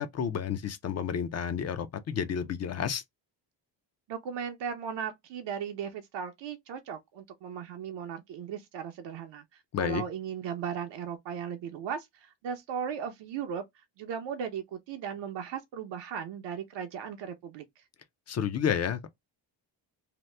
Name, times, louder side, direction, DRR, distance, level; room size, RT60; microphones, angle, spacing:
voice 1, 0.0-3.0 9.7-10.0 18.3-19.1, left 8 dB, 35° left, 0.4 m, -30 dB
voice 2, 4.1-13.6 14.0-17.8, right 7 dB, 65° right, 0.7 m, -37 dB
2.8 x 2.0 x 3.1 m
cardioid pair, 125°, 46 cm